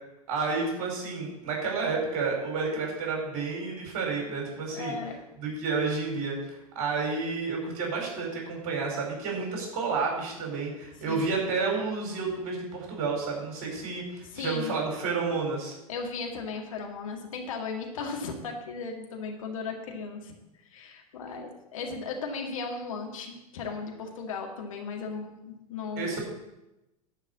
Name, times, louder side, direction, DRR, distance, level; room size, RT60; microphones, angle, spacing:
voice 1, 0.3-4.9 5.4-15.7 26.0-26.2, right 4 dB, 40° right, 0 dB, 4.9 m, -30 dB
voice 2, 4.7-5.2 11.1-11.4 14.3-14.8 15.9-20.3 20.7-26.2, left 4 dB, 60° left, 2 dB, 2.0 m, -36 dB
11.5 x 5.2 x 8.5 m, 0.92 s
figure-of-eight pair, 90°, 19 cm